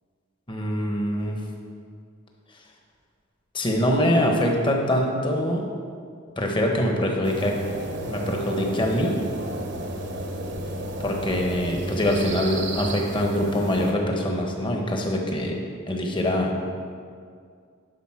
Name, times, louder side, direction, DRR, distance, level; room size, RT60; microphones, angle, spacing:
voice 1, 0.5-1.4 3.5-5.7 6.4-7.5 8.1-9.2 11.0-15.5 15.9-16.6, left 1 dB, 25° left, 1 dB, 1.1 m, -24 dB
sound 1, 7.2-13.9, right 1 dB, 55° right, 1.0 m, -32 dB
12.0 x 4.1 x 5.9 m, 2.2 s
head